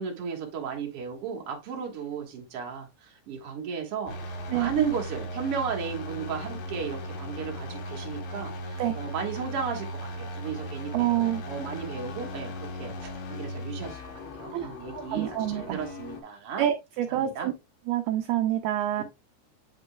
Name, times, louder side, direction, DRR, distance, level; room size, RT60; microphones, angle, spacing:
voice 1, 0.0-4.1 4.5-11.1 11.5-16.6 17.1-17.5 19.0-19.1, right 6 dB, 70° right, 1.4 m, -34 dB
sound 1, 4.1-16.2, left 1 dB, 80° left, 3.8 m, -37 dB
voice 2, 10.9-11.4 14.5-15.8 16.6-17.5 17.9-19.0, right 12 dB, 85° right, 2.2 m, -27 dB
9.5 x 5.2 x 2.3 m
omnidirectional pair, 5.3 m